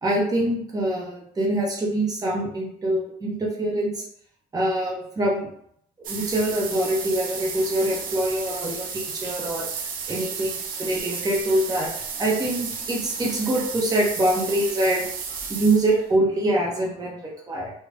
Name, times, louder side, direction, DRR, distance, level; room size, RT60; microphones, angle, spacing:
voice 1, 0.0-4.0 4.5-5.5 6.1-9.6 10.1-11.9 12.2-15.1 15.5-17.7, right 1 dB, 20° right, -3 dB, 0.8 m, -24 dB
sound 1, 6.0-16.1, right 6 dB, 55° right, 0.5 m, -33 dB
2.5 x 2.2 x 3.3 m, 0.70 s
cardioid pair, 110°, 17 cm